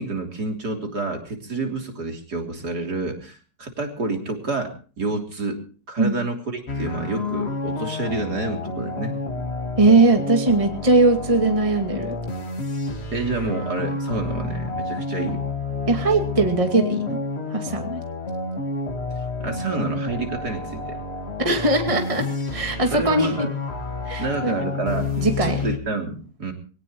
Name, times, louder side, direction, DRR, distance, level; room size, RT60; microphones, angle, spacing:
voice 1, 0.0-4.7 5.0-5.6 5.9-9.2 13.1-15.5 19.4-21.0 22.9-23.5 24.2-25.1 25.4-26.5, right 3 dB, 60° right, 2 dB, 3.8 m, -28 dB
sound 1, 6.7-25.8, left 3 dB, 35° left, 2.1 m, -30 dB
voice 2, 9.8-12.2 15.9-17.2 17.5-18.0 21.4-23.5 24.1-24.6 25.2-25.6, right 2 dB, 20° right, 3 dB, 2.4 m, -20 dB
23.0 x 18.0 x 3.1 m, 0.39 s
omnidirectional pair, 1.9 m